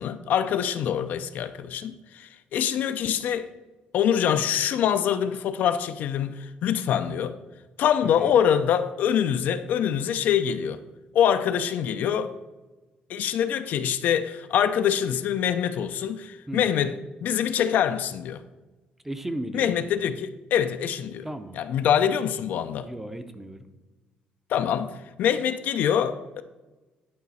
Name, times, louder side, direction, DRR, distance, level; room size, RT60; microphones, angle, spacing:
voice 1, 0.0-3.5 3.9-7.4 7.8-10.8 11.1-12.3 13.1-18.4 19.5-21.3 21.5-22.9 24.5-26.4, left 9 dB, 70° left, 0.4 m, -25 dB
voice 2, 19.0-19.7 21.2-21.6 22.8-23.6, right 1 dB, 10° right, 0.6 m, -35 dB
10.5 x 4.1 x 4.1 m
cardioid pair, 105°, 3 cm